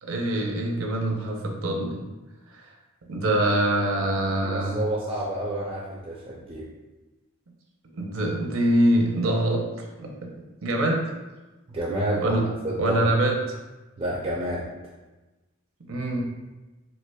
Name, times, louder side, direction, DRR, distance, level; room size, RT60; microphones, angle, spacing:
voice 1, 0.0-2.0 2.6-2.7 3.1-4.8 7.9-9.7 10.0-10.3 10.6-11.1 12.2-12.5 12.8-13.4 15.9-16.2, right 1 dB, 70° right, 0 dB, 0.6 m, -24 dB
voice 2, 4.4-6.7 11.7-12.3 12.6-13.1 14.0-14.6, right 1 dB, 25° right, -5 dB, 0.4 m, -29 dB
4.4 x 2.8 x 2.2 m, 1.1 s
head